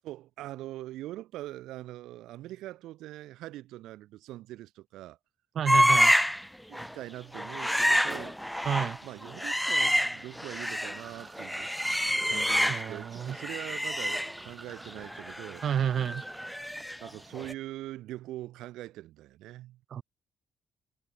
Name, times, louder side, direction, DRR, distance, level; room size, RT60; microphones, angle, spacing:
voice 1, 0.0-5.2 6.7-8.4 9.0-11.9 12.3-15.6 17.0-19.8, right 15 dB, 90° right, 7.7 m, -42 dB
voice 2, 5.5-6.1 8.6-9.0 12.7-13.4 15.6-16.2 19.9-20.0, right 9 dB, 60° right, 2.8 m, -30 dB
sound 1, 5.7-6.4 6.7-6.9 7.3-11.0 11.3-13.0 13.3-17.1 17.3-17.5, equal, ahead, 0.7 m, -28 dB
sound 2, 10.6-17.4, right 4 dB, 30° right, 4.5 m, -51 dB
cardioid pair, 90°, 0 cm